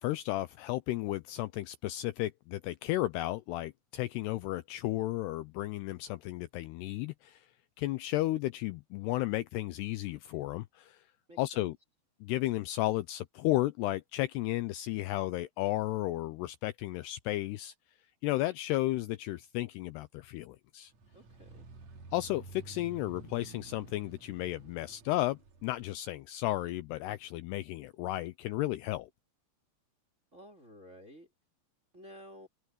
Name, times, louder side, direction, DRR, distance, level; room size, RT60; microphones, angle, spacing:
voice 1, 0.0-7.5 7.8-11.1 11.4-11.8 12.2-17.7 18.2-20.9 22.1-29.1, left 16 dB, 85° left, 2.4 m, -33 dB
voice 2, 11.3-11.7 21.1-21.7 30.3-31.3 31.9-32.5, equal, 20° right, 2.1 m, -52 dB
sound 1, 20.9-25.9, right 3 dB, 45° right, 2.9 m, -51 dB
omnidirectional pair, 5.3 m